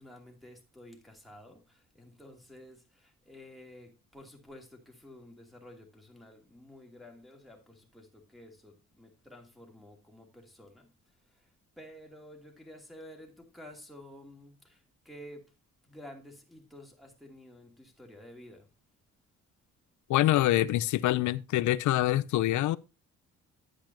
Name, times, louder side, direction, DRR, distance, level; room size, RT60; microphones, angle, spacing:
voice 1, 0.0-15.5 15.8-18.7, left 1 dB, ahead, 2.5 m, -51 dB
voice 2, 20.1-22.8, left 15 dB, 75° left, 0.6 m, -25 dB
10.5 x 8.3 x 2.8 m
cardioid pair, 90°, 30 cm